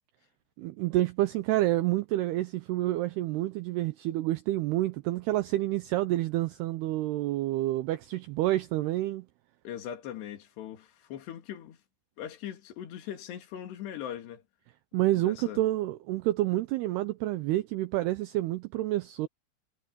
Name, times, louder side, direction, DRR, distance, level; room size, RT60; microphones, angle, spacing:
voice 1, 0.6-9.3 14.9-19.3, right 16 dB, 90° right, 2.3 m, -28 dB
voice 2, 9.6-11.8 12.2-14.4 15.1-15.6, left 10 dB, 65° left, 4.4 m, -40 dB
omnidirectional pair, 5.5 m